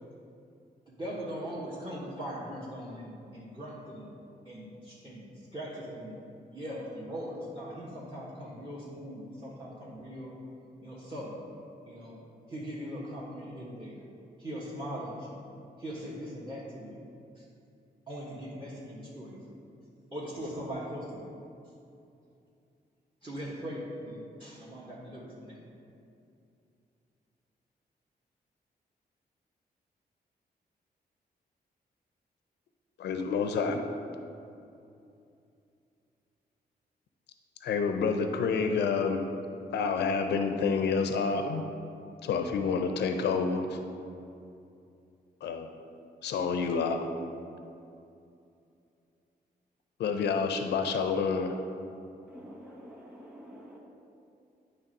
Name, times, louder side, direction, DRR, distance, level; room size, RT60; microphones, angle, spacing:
voice 1, 0.9-4.1 4.4-6.2 6.5-10.3 10.8-11.4 11.9-12.2 12.5-14.1 14.4-15.4 15.8-17.0 17.3-17.4 18.1-19.4 20.1-21.2 23.2-25.6, equal, 30° right, -6 dB, 1.4 m, -40 dB
voice 2, 33.0-33.9 37.6-39.3 39.7-41.6 42.2-43.8 45.4-45.7 46.2-47.0 50.0-51.5, left 5 dB, 90° left, 6 dB, 0.5 m, -28 dB
voice 3, 52.3-53.8, equal, 5° right, -3 dB, 1.7 m, -48 dB
9.0 x 3.3 x 5.3 m, 2.6 s
cardioid pair, 75°, 17 cm